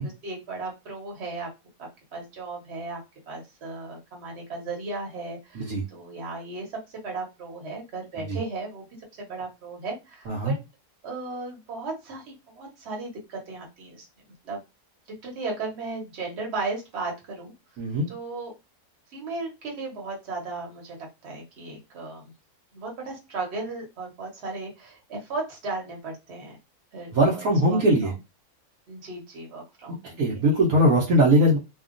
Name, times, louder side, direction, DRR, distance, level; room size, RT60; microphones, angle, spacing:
voice 1, 0.0-1.5 2.1-3.0 3.3-6.7 6.9-8.9 9.2-10.6 11.0-14.1 14.4-14.6 15.2-17.5 18.1-18.5 19.1-21.0 21.2-22.2 22.7-26.6 26.9-27.4 27.7-28.1 28.9-30.2, right 3 dB, 45° right, 0 dB, 1.1 m, -35 dB
voice 2, 17.8-18.1 27.1-28.1 30.2-31.6, right 1 dB, 65° right, -4 dB, 1.1 m, -21 dB
2.8 x 2.3 x 2.5 m, 0.24 s
omnidirectional pair, 1.8 m